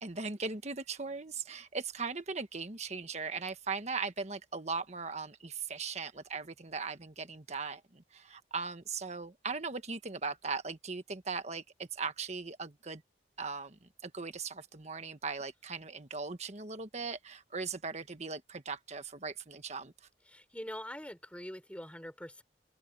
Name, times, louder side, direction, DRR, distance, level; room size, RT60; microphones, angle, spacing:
voice 1, 0.0-13.0 13.4-19.9, right 4 dB, 40° right, 1.4 m, -39 dB
voice 2, 20.3-22.4, equal, 5° left, 6.3 m, -44 dB
open air
head